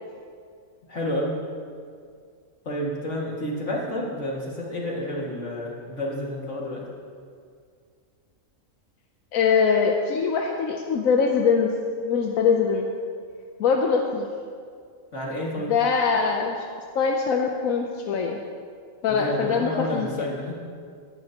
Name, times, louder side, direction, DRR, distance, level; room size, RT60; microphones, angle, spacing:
voice 1, 0.9-1.3 2.6-6.8 15.1-15.7 19.1-20.6, left 1 dB, 60° left, -3 dB, 2.5 m, -30 dB
voice 2, 9.3-11.7 12.0-12.9 13.6-14.3 15.6-16.6 16.9-18.4 19.0-20.3, left 5 dB, 85° left, 2 dB, 1.2 m, -22 dB
19.0 x 11.0 x 2.9 m, 2.2 s
omnidirectional pair, 1.4 m